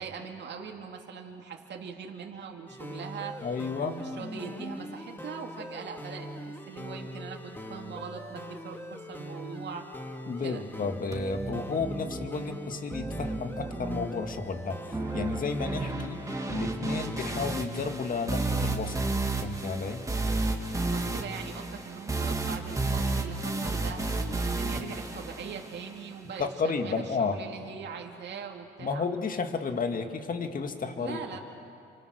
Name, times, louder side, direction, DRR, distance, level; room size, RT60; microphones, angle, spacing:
voice 1, 0.0-3.5 3.8-9.9 10.4-10.7 20.9-29.1 31.0-31.4, right 6 dB, 60° right, 1 dB, 2.4 m, -41 dB
sound 1, 2.7-17.6, equal, 10° left, 2.3 m, -42 dB
voice 2, 3.4-4.0 10.3-14.8 15.1-19.0 19.4-20.0 26.4-27.4 28.8-31.2, left 4 dB, 45° left, 6 dB, 2.1 m, -32 dB
sound 2, 11.1-26.1, right 2 dB, 15° right, 2.3 m, -32 dB
28.5 x 25.5 x 6.4 m, 2.5 s
cardioid pair, 90°, 20 cm